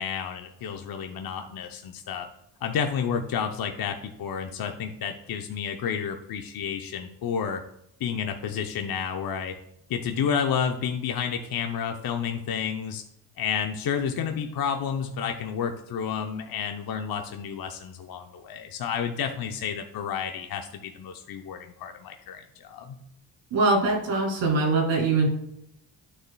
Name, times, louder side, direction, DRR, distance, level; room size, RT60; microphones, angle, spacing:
voice 1, 0.0-2.3 2.6-7.6 8.0-9.6 9.9-13.0 13.4-23.0, left 7 dB, 55° left, 5 dB, 0.7 m, -30 dB
voice 2, 23.5-25.3, right 3 dB, 85° right, -1 dB, 2.8 m, -22 dB
9.4 x 6.6 x 2.3 m, 0.77 s
supercardioid pair, 60°, 44 cm